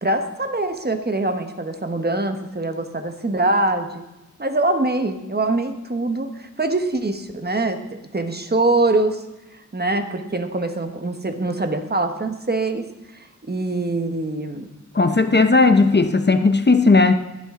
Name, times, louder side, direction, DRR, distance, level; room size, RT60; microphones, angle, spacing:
voice 1, 0.0-3.9 4.4-7.8 8.1-9.2 9.7-12.9 13.1-14.7, right 2 dB, 30° right, 7 dB, 1.2 m, -23 dB
voice 2, 14.9-17.1, left 3 dB, 35° left, 8 dB, 0.8 m, -15 dB
16.5 x 11.0 x 3.7 m, 0.99 s
wide cardioid pair, 100°, 30 cm